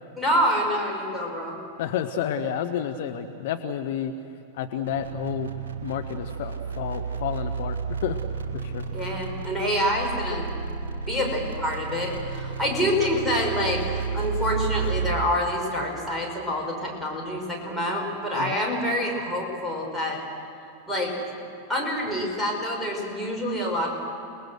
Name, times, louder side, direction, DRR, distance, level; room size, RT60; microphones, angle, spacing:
voice 1, 0.2-1.6 8.9-10.8 11.1-20.2 20.9-21.2 21.7-23.9, equal, ahead, -3 dB, 5.8 m, -27 dB
voice 2, 1.8-4.1 4.5-5.5 5.8-8.2 8.5-8.9 18.4-18.6, left 9 dB, 55° left, 8 dB, 1.0 m, -30 dB
sound 1, 4.8-15.3, right 5 dB, 60° right, 1.8 m, -32 dB
29.0 x 20.0 x 6.4 m, 2.8 s
figure-of-eight pair, 90°, 0 cm